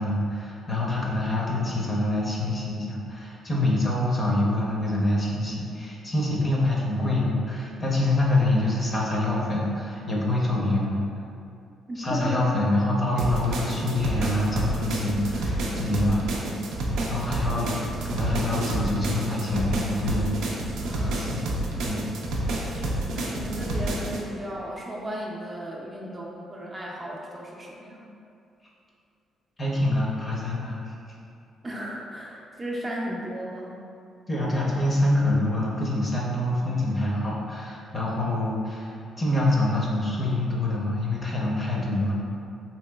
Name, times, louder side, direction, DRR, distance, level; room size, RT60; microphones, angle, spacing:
voice 1, 0.0-11.0 12.0-16.2 17.1-17.7 18.1-20.4 21.0-21.5 21.8-22.1 29.6-30.9 34.3-42.1, left 1 dB, 35° left, -4 dB, 0.6 m, -26 dB
voice 2, 11.9-12.4 17.6-17.7 20.8-21.3 22.6-28.1 31.6-33.8, right 1 dB, 25° right, -3 dB, 0.4 m, -35 dB
sound 1, 13.2-24.2, right 1 dB, 90° right, 0.4 m, -29 dB
3.0 x 2.9 x 2.2 m, 2.5 s
cardioid pair, 90°, 0 cm